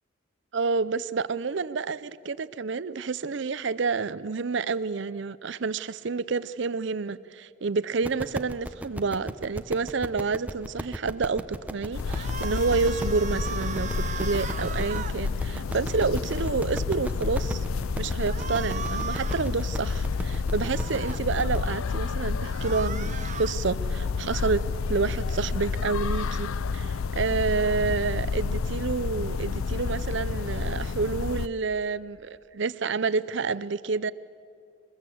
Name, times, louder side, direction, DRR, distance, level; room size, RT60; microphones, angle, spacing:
voice 1, 0.5-17.6 18.0-34.1, right 4 dB, 60° right, 16 dB, 0.5 m, -29 dB
sound 1, 8.0-21.6, right 1 dB, 5° right, 0.7 m, -37 dB
sound 2, 11.9-31.5, left 4 dB, 85° left, 0.5 m, -30 dB
sound 3, 12.1-15.2 18.3-19.5 20.6-21.2 22.4-23.6, right 6 dB, 35° right, 0.9 m, -37 dB
22.5 x 21.0 x 7.8 m, 2.4 s
head